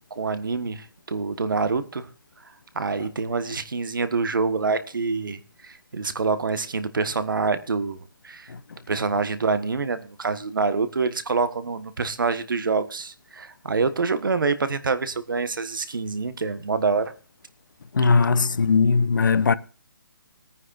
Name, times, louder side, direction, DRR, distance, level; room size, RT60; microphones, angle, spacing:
voice 1, 0.1-2.1 2.7-8.5 8.9-17.1, right 4 dB, 70° right, 1.5 m, -26 dB
voice 2, 17.9-19.5, left 4 dB, 65° left, 0.8 m, -19 dB
20.0 x 9.6 x 2.6 m
hypercardioid pair, 180°, 11 cm